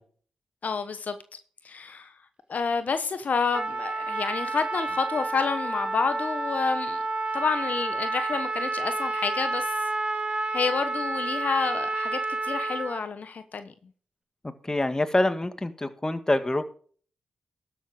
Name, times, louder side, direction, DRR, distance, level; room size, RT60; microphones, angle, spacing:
voice 1, 0.6-1.2 1.6-2.1 2.5-7.0 7.3-9.7 10.3-13.7, left 5 dB, 60° left, 1.1 m, -29 dB
Trumpet, 3.5-13.0, right 3 dB, 35° right, 1.9 m, -30 dB
voice 2, 14.7-16.6, left 1 dB, 20° left, 1.7 m, -25 dB
12.5 x 7.4 x 5.0 m
supercardioid pair, 45°, 3 cm